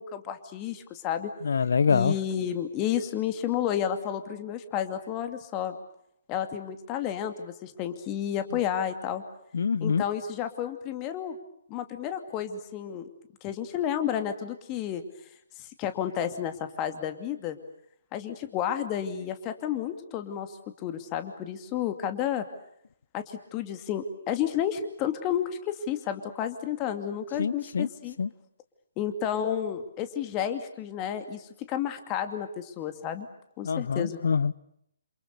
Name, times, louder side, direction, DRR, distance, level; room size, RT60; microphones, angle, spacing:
voice 1, 0.0-1.3 1.9-5.8 6.3-9.2 9.8-11.4 11.7-13.1 13.4-15.0 15.6-17.6 18.1-22.4 23.1-28.2 29.0-33.3 33.6-34.2, left 9 dB, 25° left, 8 dB, 2.5 m, -31 dB
voice 2, 1.4-2.1 9.5-10.0 27.4-27.9 28.2-28.3 33.6-34.5, left 6 dB, 60° left, 17 dB, 1.1 m, -25 dB
28.5 x 28.0 x 6.9 m, 0.73 s
figure-of-eight pair, 135°, 0 cm